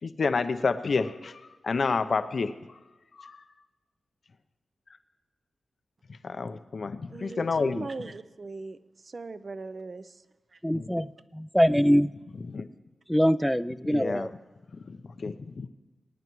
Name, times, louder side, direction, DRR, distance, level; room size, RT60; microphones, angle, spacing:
voice 1, 0.0-2.8 3.1-3.4 6.1-7.9 10.7-11.0 12.5-12.7 13.9-14.3 14.7-15.7, left 4 dB, 65° left, 11 dB, 0.6 m, -30 dB
voice 2, 7.1-8.8 9.0-10.2 10.5-10.6, right 3 dB, 50° right, 13 dB, 0.5 m, -39 dB
voice 3, 10.6-12.1 13.1-14.3, equal, ahead, 15 dB, 0.4 m, -23 dB
23.0 x 9.5 x 3.1 m, 1.2 s
cardioid pair, 50°, 0 cm